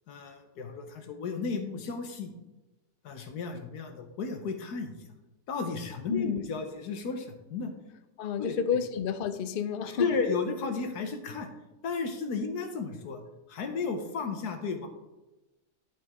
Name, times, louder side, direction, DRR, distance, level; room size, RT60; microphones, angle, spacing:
voice 1, 0.1-2.3 3.0-4.9 5.5-7.7 8.4-8.5 10.0-11.5 11.8-13.2 13.5-14.9, left 4 dB, 90° left, 6 dB, 1.6 m, -33 dB
voice 2, 6.1-6.5 8.2-10.2, left 7 dB, 65° left, 9 dB, 0.5 m, -30 dB
12.0 x 5.3 x 3.6 m, 1.0 s
omnidirectional pair, 1.6 m